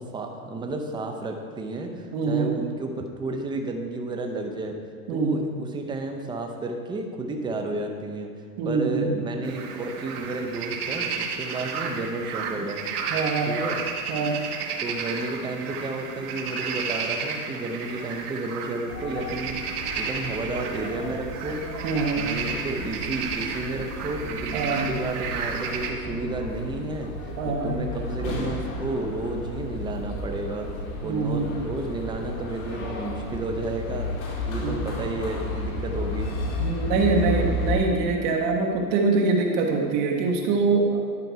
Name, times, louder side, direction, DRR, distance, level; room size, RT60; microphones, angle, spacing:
voice 1, 0.0-4.8 5.1-8.3 8.6-12.8 13.4-13.8 14.8-21.6 22.2-27.1 27.5-30.7 31.0-34.1 34.5-36.3 37.1-37.4, right 2 dB, 10° right, 3 dB, 0.6 m, -32 dB
voice 2, 2.1-2.5 5.1-5.5 8.6-9.1 13.1-13.6 14.1-14.4 21.8-22.2 24.5-24.9 27.4-27.7 31.0-31.6 34.6-34.8 36.6-41.0, right 4 dB, 50° right, 2 dB, 1.3 m, -24 dB
sound 1, 9.4-25.9, right 5 dB, 70° right, 1.3 m, -32 dB
sound 2, 18.9-37.8, left 2 dB, 40° left, 1.7 m, -33 dB
11.0 x 5.3 x 4.6 m, 2.2 s
supercardioid pair, 135°, 47 cm